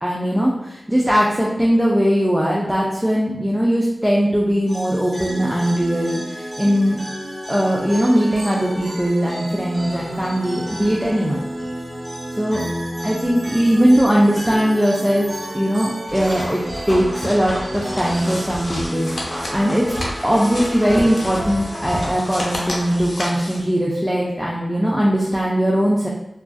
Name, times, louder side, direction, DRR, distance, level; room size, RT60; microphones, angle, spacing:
voice 1, 0.0-7.0 7.5-11.5 12.4-12.6 13.0-16.6 16.9-19.9 20.2-26.1, equal, 5° right, -4 dB, 0.4 m, -19 dB
sound 1, 4.7-22.0, equal, 50° right, 1.2 m, -31 dB
sound 2, 16.1-22.9, equal, 55° left, 1.3 m, -32 dB
sound 3, 17.8-23.6, left 1 dB, 75° left, 0.5 m, -32 dB
2.5 x 2.3 x 2.3 m, 0.88 s
wide cardioid pair, 50°, 0 cm